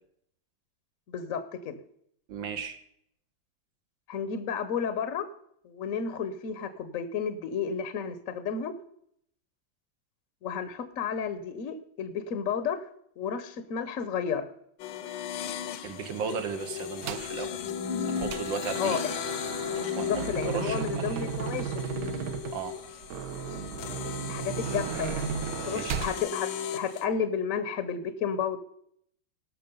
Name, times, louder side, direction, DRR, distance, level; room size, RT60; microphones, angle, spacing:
voice 1, 1.1-1.8 4.1-5.3 5.6-8.7 10.4-12.8 13.2-14.5 18.8-19.1 20.0-21.7 24.2-25.3 25.6-28.6, left 7 dB, 55° left, 11 dB, 1.0 m, -32 dB
voice 2, 2.3-2.8 15.8-17.6 18.0-19.0 19.9-21.2 22.5-22.8 25.7-26.0, right 6 dB, 80° right, 7 dB, 1.8 m, -35 dB
sound 1, 14.8-27.1, left 8 dB, 80° left, 1.5 m, -36 dB
sound 2, 17.0-17.4 17.8-26.2, right 8 dB, 65° right, 1.0 m, -35 dB
18.5 x 6.1 x 5.3 m, 0.71 s
omnidirectional pair, 2.1 m